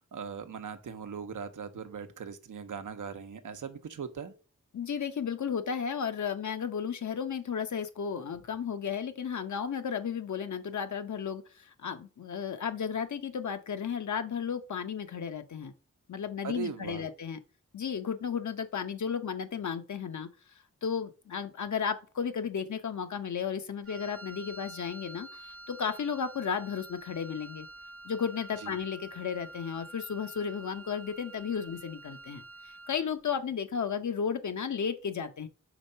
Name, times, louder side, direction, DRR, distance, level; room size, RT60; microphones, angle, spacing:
voice 1, 0.1-4.3 16.4-17.1 28.6-28.7, right 6 dB, 75° right, 0.8 m, -39 dB
voice 2, 4.7-15.7 16.1-17.4 17.7-20.3 20.8-27.7 28.0-32.4 32.9-35.5, left 7 dB, 70° left, 0.9 m, -34 dB
Wind instrument woodwind instrument, 23.8-33.1, right 2 dB, 45° right, 0.6 m, -48 dB
5.0 x 3.7 x 5.5 m
cardioid pair, 65°, 31 cm